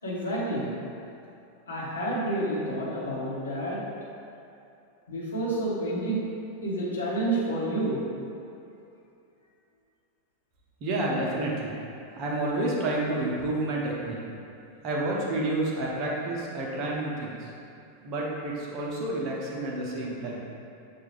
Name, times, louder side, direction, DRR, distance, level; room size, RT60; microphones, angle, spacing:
voice 1, 0.0-0.7 1.7-3.8 5.1-6.2 6.6-8.0 12.1-12.2, right 1 dB, 75° left, -7 dB, 1.1 m, -29 dB
voice 2, 10.8-11.8 12.2-14.2 14.8-17.5 18.0-20.4, right 2 dB, 40° right, -3 dB, 0.7 m, -29 dB
6.4 x 2.4 x 3.1 m, 2.6 s
figure-of-eight pair, 90°, 0 cm